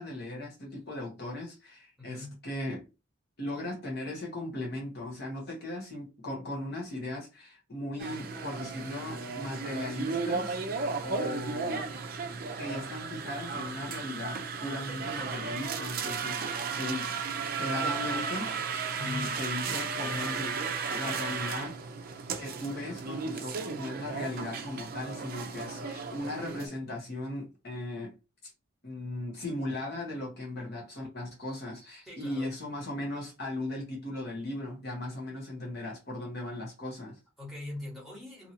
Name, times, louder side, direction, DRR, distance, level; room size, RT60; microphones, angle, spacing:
voice 1, 0.0-2.9 3.4-10.6 11.0-11.9 12.6-17.2 17.6-18.5 19.0-21.8 22.4-28.2 28.4-28.5 28.8-37.2, left 1 dB, 50° left, 1.0 m, -37 dB
voice 2, 2.0-2.4 18.9-19.3 32.1-32.5 37.4-38.5, left 1 dB, ahead, 1.3 m, -41 dB
sound 1, 8.0-26.7, right 5 dB, 45° right, 0.4 m, -35 dB
2.7 x 2.7 x 2.8 m
head